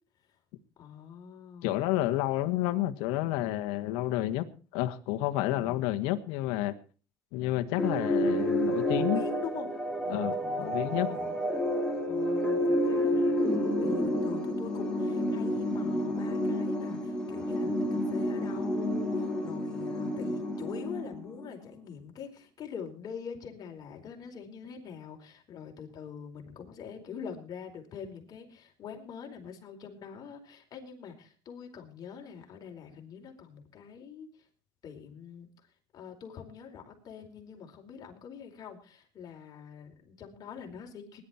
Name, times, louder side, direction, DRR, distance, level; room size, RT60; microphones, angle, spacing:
voice 1, 0.8-1.8 9.0-9.8 10.1-11.4 12.0-34.3 34.8-35.5 35.9-41.2, left 7 dB, 40° left, 2 dB, 4.5 m, -44 dB
voice 2, 1.6-4.5 4.7-6.7 7.3-9.2 10.1-11.1, left 15 dB, 75° left, 8 dB, 1.6 m, -30 dB
sound 1, 7.8-21.5, equal, 5° left, 3.4 m, -30 dB
20.0 x 11.5 x 4.3 m, 0.37 s
cardioid pair, 120°, 10 cm